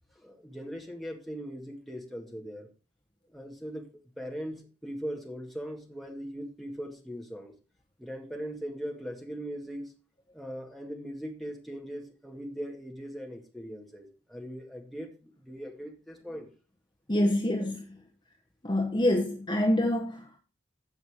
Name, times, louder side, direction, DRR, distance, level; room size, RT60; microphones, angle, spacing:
voice 1, 0.2-2.7 3.3-3.9 4.2-7.5 8.0-9.9 10.3-16.5, equal, ahead, 2.2 m, -40 dB
voice 2, 17.1-18.0 18.6-20.4, left 1 dB, 25° left, 1.2 m, -26 dB
15.5 x 6.0 x 3.7 m
head